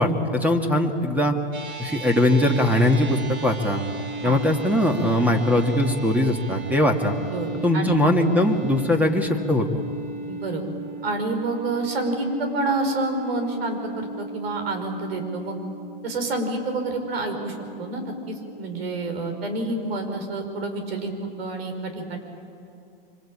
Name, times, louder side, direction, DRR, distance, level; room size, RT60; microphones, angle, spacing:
voice 1, 0.0-1.3 1.8-3.8 4.2-7.1 7.6-9.6, left 1 dB, 5° right, 3 dB, 2.3 m, -21 dB
sound 1, 1.5-20.1, right 2 dB, 50° right, 5.5 m, -37 dB
voice 2, 7.3-8.0 10.3-10.6 11.0-15.6 16.0-22.2, right 2 dB, 75° right, 6 dB, 5.7 m, -28 dB
26.0 x 25.0 x 8.9 m, 2.5 s
hypercardioid pair, 115°, 30 cm